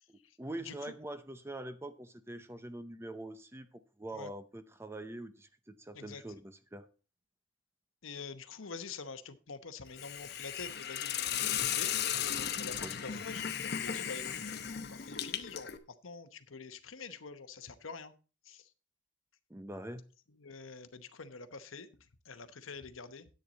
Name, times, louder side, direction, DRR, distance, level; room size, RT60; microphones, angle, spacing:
voice 1, 0.1-6.9 12.8-13.3 19.5-20.0, right 1 dB, 10° right, 0.6 m, -44 dB
voice 2, 8.0-12.1 12.6-14.5 14.8-15.7 16.0-18.1 18.4-18.7 20.4-21.9 22.3-23.3, left 4 dB, 85° left, 1.0 m, -46 dB
Hiss, 10.0-15.8, left 9 dB, 55° left, 0.9 m, -36 dB
10.5 x 8.7 x 4.0 m
head